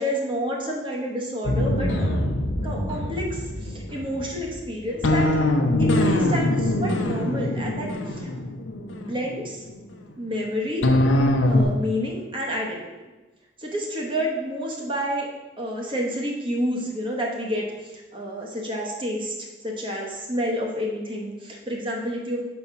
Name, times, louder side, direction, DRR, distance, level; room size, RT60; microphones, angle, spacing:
voice 1, 0.0-2.3 2.6-5.3 5.8-8.3 8.9-9.6 10.2-10.9 11.5-12.8 13.6-15.3 15.6-19.3 19.6-22.4, equal, 25° right, -1 dB, 1.0 m, -29 dB
sound 1, 1.4-9.7 10.8-11.6, left 1 dB, 90° left, 0.7 m, -23 dB
5.5 x 4.2 x 5.9 m, 1.2 s
head